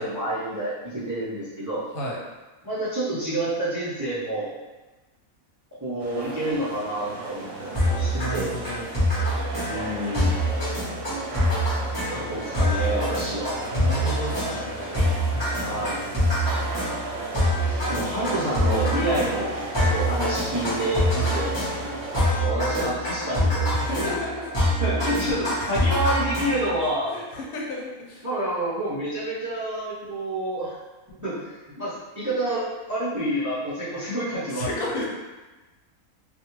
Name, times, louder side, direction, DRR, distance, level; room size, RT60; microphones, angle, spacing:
voice 1, 0.0-1.8 2.6-4.5 5.8-8.5 9.7-10.4 12.1-13.6 15.6-16.0 17.8-21.6 22.4-24.1 24.8-27.2 28.2-30.7 31.1-34.7 35.0-35.1, right 1 dB, 30° right, -11 dB, 0.3 m, -28 dB
sound 1, 6.0-22.4, right 3 dB, 70° right, 0.9 m, -35 dB
sound 2, 7.7-26.8, equal, 25° left, 0.8 m, -25 dB
voice 2, 8.1-8.9 13.7-15.0 15.3-15.9 21.1-21.4 23.7-24.6 25.0-25.2 25.6-25.9 27.0-28.3 34.5-35.1, equal, 85° left, -3 dB, 1.1 m, -33 dB
2.4 x 2.3 x 3.0 m, 1.2 s
omnidirectional pair, 1.5 m